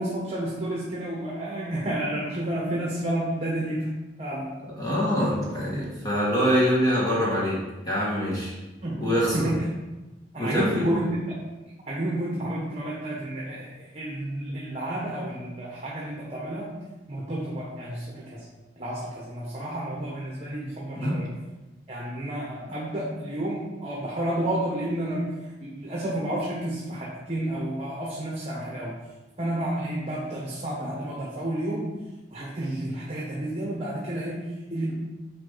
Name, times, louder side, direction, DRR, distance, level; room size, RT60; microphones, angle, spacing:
voice 1, 0.0-3.9 4.2-4.5 8.8-9.6 10.3-11.1 11.9-16.8 17.1-18.4 18.8-21.3 21.9-25.3 25.6-29.0 29.4-31.9 32.3-34.9, right 1 dB, 35° right, -4 dB, 1.3 m, -30 dB
voice 2, 4.6-7.6 7.8-8.5 9.0-9.5 10.4-10.9 21.0-21.2, equal, 20° left, -6 dB, 1.7 m, -24 dB
8.7 x 4.7 x 4.0 m, 1.1 s
head